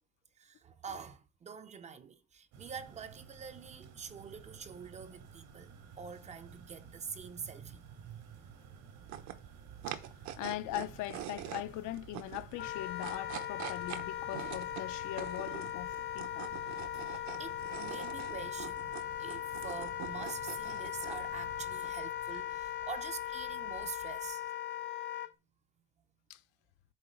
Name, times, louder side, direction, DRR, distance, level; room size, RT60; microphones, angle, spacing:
voice 1, 0.4-5.7 6.0-8.4 17.0-24.5, right 6 dB, 25° right, 0.5 m, -46 dB
sound 1, 2.5-21.8, right 6 dB, 85° right, 3.0 m, -54 dB
sound 2, 9.0-24.3, right 11 dB, 65° right, 1.1 m, -46 dB
voice 2, 10.4-16.5 26.3-26.4, left 16 dB, 75° left, 0.7 m, -41 dB
Wind instrument woodwind instrument, 12.5-25.3, left 12 dB, 40° left, 0.7 m, -39 dB
8.3 x 4.0 x 6.2 m
cardioid pair, 175°, 30 cm